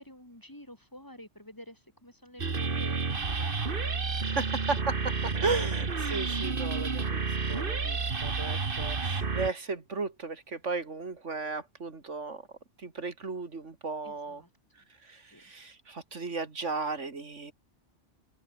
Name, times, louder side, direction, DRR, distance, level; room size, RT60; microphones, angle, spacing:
voice 1, 0.0-3.9 5.5-5.6 14.0-14.5 14.8-14.9 15.3-15.5, left 1 dB, 15° left, 3.8 m, -49 dB
sound 1, 2.4-9.5, right 4 dB, 50° right, 1.8 m, -30 dB
voice 2, 4.1-12.5 12.8-14.4 15.0-17.5, right 4 dB, 80° right, 2.9 m, -35 dB
omnidirectional pair, 1.2 m